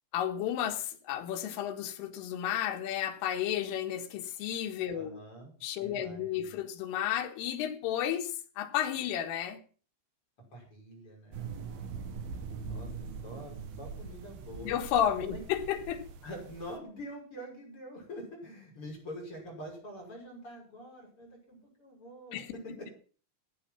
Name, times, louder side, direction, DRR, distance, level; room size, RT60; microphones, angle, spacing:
voice 1, 0.1-5.2 5.6-9.6 14.6-16.1 22.3-22.9, left 10 dB, 90° left, 4.0 m, -32 dB
voice 2, 4.9-5.5 5.8-6.6 10.5-11.5 12.6-12.9 13.2-14.7 15.3-15.4 16.2-22.4 22.8-22.9, equal, 25° left, 6.7 m, -45 dB
sound 1, 11.3-16.8, right 5 dB, 60° right, 2.9 m, -42 dB
15.0 x 9.8 x 6.0 m
omnidirectional pair, 5.6 m